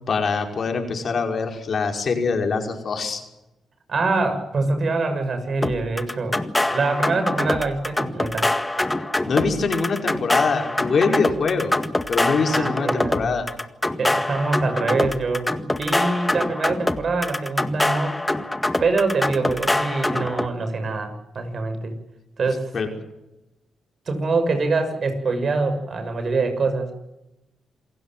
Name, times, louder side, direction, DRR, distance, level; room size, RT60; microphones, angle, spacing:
voice 1, 0.1-3.2 9.3-11.7 12.1-13.5 22.7-22.9, left 4 dB, 55° left, 3 dB, 5.3 m, -23 dB
voice 2, 3.9-6.4 6.7-8.5 12.5-13.3 14.0-18.2 18.8-22.0 22.4-22.7 24.1-26.9, right 3 dB, 55° right, 8 dB, 6.3 m, -24 dB
sound 1, 5.6-20.5, left 1 dB, 15° left, 1.8 m, -24 dB
28.0 x 17.0 x 7.7 m, 0.95 s
cardioid pair, 70°, 0 cm